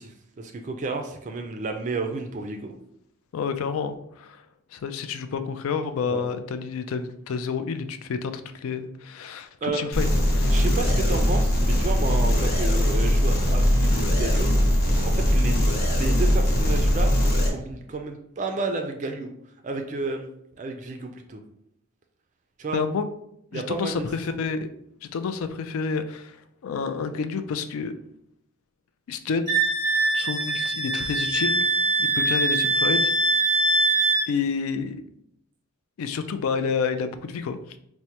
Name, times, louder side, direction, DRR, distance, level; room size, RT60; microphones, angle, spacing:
voice 1, 0.0-2.7 6.1-6.2 9.6-9.8 10.5-14.5 15.0-15.6 15.9-19.3 19.6-20.3 20.6-21.4 22.6-22.8 23.5-24.1, right 3 dB, 35° right, 4 dB, 0.3 m, -31 dB
voice 2, 3.3-4.4 4.7-10.7 22.7-23.1 23.5-24.7 25.0-27.9 29.1-29.6 30.1-33.1 34.3-35.0 36.0-37.8, left 5 dB, 75° left, 10 dB, 0.3 m, -29 dB
sound 1, 9.9-17.5, equal, 45° left, 1.0 m, -21 dB
Wind instrument woodwind instrument, 29.5-34.3, right 2 dB, 20° left, 0.9 m, -22 dB
4.4 x 2.1 x 2.8 m, 0.75 s
head